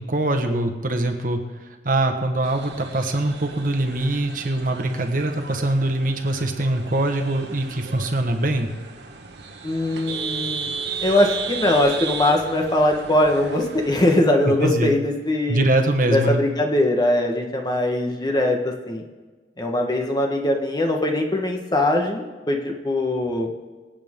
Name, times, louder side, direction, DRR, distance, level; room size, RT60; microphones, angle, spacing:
voice 1, 0.0-1.4 1.8-8.7 14.5-14.9 15.5-16.4, right 1 dB, 50° right, 5 dB, 1.4 m, -23 dB
sound 1, 2.4-14.2, right 5 dB, 85° right, 1.4 m, -35 dB
voice 2, 9.6-10.7 11.0-15.7 16.1-19.0 19.6-23.5, left 1 dB, 25° left, 2 dB, 1.3 m, -21 dB
24.5 x 8.8 x 3.7 m, 1.3 s
head